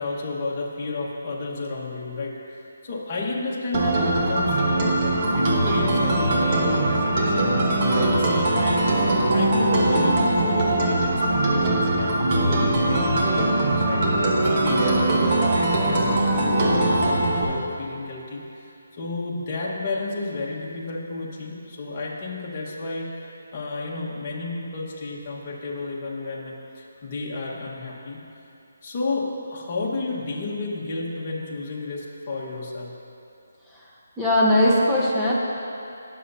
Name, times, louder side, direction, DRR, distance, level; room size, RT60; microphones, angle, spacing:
voice 1, 0.0-7.5 7.9-14.1 14.4-28.2 28.8-32.9, left 3 dB, 30° left, -4 dB, 1.4 m, -32 dB
sound 1, 3.7-17.4, right 2 dB, 30° right, 1.3 m, -21 dB
voice 2, 34.2-35.3, left 1 dB, 5° right, -7 dB, 1.1 m, -19 dB
18.0 x 6.8 x 2.8 m, 2.7 s
hypercardioid pair, 165°, 0 cm